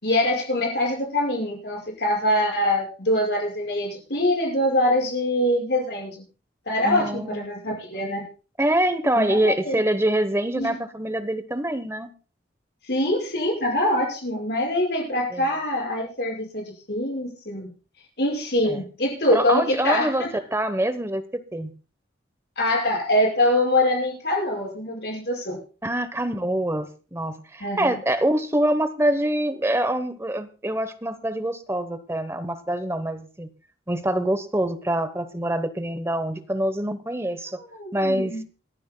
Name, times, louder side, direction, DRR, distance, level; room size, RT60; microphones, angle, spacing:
voice 1, 0.0-6.2 6.7-8.2 9.1-9.8 10.6-10.7 12.9-17.7 18.2-20.3 22.6-25.6 27.6-27.9 37.8-38.4, left 1 dB, 60° left, -1 dB, 5.9 m, -24 dB
voice 2, 6.8-7.5 7.9-8.0 8.6-12.1 15.3-15.6 18.6-18.9 19.3-21.2 21.5-21.7 25.8-33.5 33.9-37.6 37.9-38.4, right 1 dB, 15° right, 11 dB, 0.9 m, -25 dB
28.5 x 10.5 x 2.2 m, 0.36 s
head